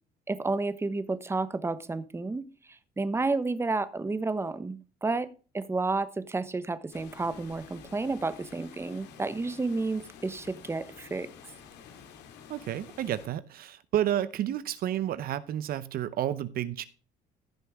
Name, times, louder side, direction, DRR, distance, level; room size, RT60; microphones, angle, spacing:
voice 1, 0.3-2.4 2.7-5.3 5.5-11.3, right 3 dB, 15° right, 1.0 m, -31 dB
Water, 6.9-13.3, left 7 dB, 85° left, 2.3 m, -50 dB
voice 2, 12.5-16.9, right 11 dB, 60° right, 0.8 m, -31 dB
15.5 x 6.8 x 3.5 m
cardioid pair, 110°, 17 cm